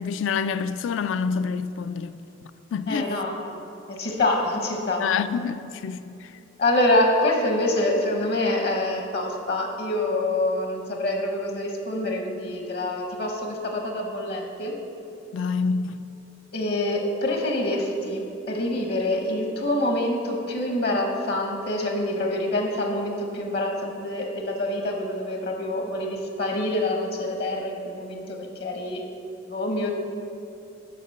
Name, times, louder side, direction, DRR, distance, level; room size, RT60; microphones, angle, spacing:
voice 1, 0.0-2.2 2.4-3.1 5.0-6.3 15.3-16.0, left 5 dB, 75° left, 0.3 m, -27 dB
voice 2, 2.9-3.6 3.9-5.0 6.6-14.7 16.5-29.0 29.5-29.9, left 1 dB, 55° left, 0.9 m, -26 dB
6.7 x 5.1 x 6.5 m
head